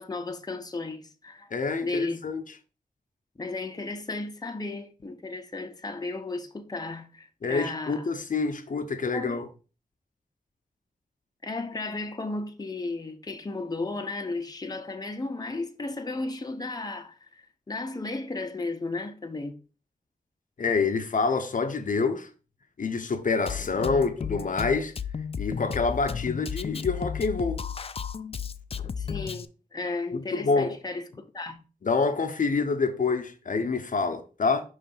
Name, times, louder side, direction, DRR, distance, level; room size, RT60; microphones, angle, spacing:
voice 1, 0.0-1.5 1.8-2.3 3.4-8.1 9.1-9.4 11.4-19.5 24.2-24.3 29.0-31.1 31.3-31.6, left 3 dB, 25° left, 0.8 m, -34 dB
voice 2, 1.5-2.4 7.4-9.4 20.6-22.3 22.8-24.9 25.4-27.6 30.1-30.8 31.8-34.6, left 4 dB, 65° left, 0.7 m, -27 dB
Drum kit, 23.5-29.5, left 6 dB, 40° left, 0.4 m, -33 dB
5.5 x 3.2 x 5.3 m
wide cardioid pair, 90°, 15 cm